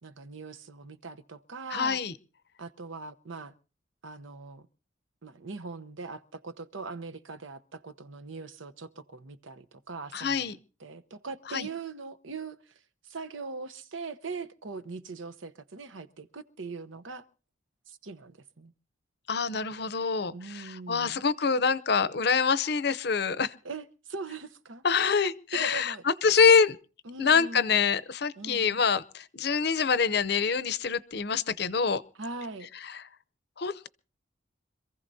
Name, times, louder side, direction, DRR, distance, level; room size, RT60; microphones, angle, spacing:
voice 1, 0.0-2.0 2.6-3.5 4.0-4.7 5.2-17.2 17.9-18.7 20.3-21.2 23.6-24.8 25.5-26.0 27.0-27.9 28.4-28.8 32.1-32.7, right 4 dB, 80° right, 0.9 m, -41 dB
voice 2, 1.7-2.1 10.1-10.6 11.5-11.7 19.3-23.5 24.8-26.8 27.2-32.0 33.6-33.9, left 5 dB, 55° left, 0.6 m, -25 dB
26.5 x 15.0 x 2.7 m
head